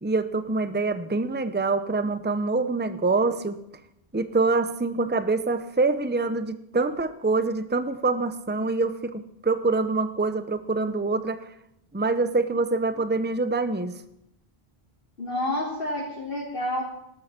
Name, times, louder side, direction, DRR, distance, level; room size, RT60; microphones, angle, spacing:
voice 1, 0.0-3.6 4.1-11.4 11.9-13.9, right 3 dB, 10° right, 11 dB, 0.8 m, -25 dB
voice 2, 15.2-16.8, left 1 dB, 60° left, -6 dB, 4.5 m, -29 dB
18.0 x 13.0 x 6.0 m, 0.79 s
omnidirectional pair, 1.1 m